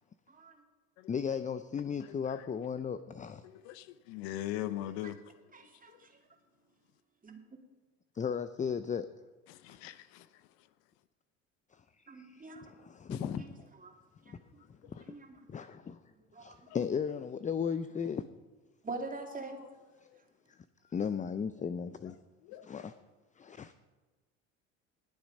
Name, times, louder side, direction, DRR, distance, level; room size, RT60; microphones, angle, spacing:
voice 1, 0.3-0.6 5.5-6.2 7.2-7.4 12.1-12.7 13.4-13.5 13.8-13.9 14.3-14.6 15.1-15.4 16.3-16.7 18.8-19.6, right 3 dB, 20° right, 2.5 m, -44 dB
voice 2, 1.1-3.4 8.1-9.1 12.0-13.4 14.3-14.4 14.9-15.1 15.5-16.0 16.4-18.2 20.9-22.2 22.6-22.9 23.4-23.7, left 7 dB, 20° left, 0.5 m, -35 dB
voice 3, 2.0-2.5 3.4-5.2 5.9-6.0 9.5-10.7 13.1-13.4 14.8-14.9 16.7-16.8 19.3-19.7 20.0-20.2 22.4-22.8, left 13 dB, 65° left, 0.8 m, -42 dB
19.5 x 7.1 x 5.4 m
hypercardioid pair, 70°, 39 cm